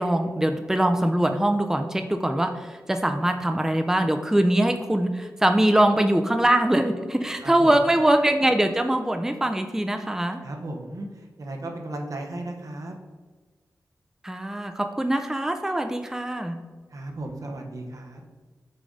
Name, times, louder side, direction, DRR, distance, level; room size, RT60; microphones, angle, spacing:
voice 1, 0.0-10.4 14.2-16.6, right 1 dB, 10° right, 6 dB, 0.5 m, -22 dB
voice 2, 7.4-7.9 10.4-12.9 16.9-18.2, right 2 dB, 65° right, 2 dB, 1.0 m, -35 dB
6.6 x 3.9 x 3.8 m, 1.4 s
cardioid pair, 45°, 6 cm